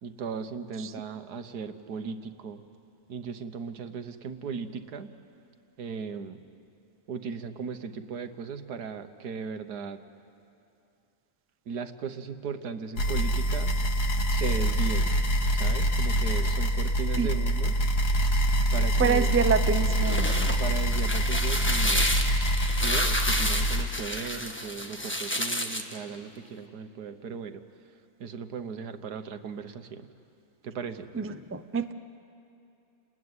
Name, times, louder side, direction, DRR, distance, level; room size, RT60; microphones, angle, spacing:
voice 1, 0.0-2.6 3.1-5.1 5.8-6.4 7.1-10.0 11.7-13.7 14.3-15.1 15.5-17.8 18.7-19.3 20.6-22.1 22.8-27.6 28.2-30.1 30.6-31.1, right 6 dB, 85° right, 9 dB, 1.7 m, -37 dB
sound 1, 13.0-23.8, equal, 85° left, 2.3 m, -25 dB
voice 2, 19.0-20.6 31.1-31.9, right 6 dB, 20° right, 10 dB, 0.4 m, -27 dB
sound 2, 19.8-26.0, left 1 dB, 10° left, 1.3 m, -30 dB
29.5 x 20.0 x 9.7 m, 2.6 s
omnidirectional pair, 1.6 m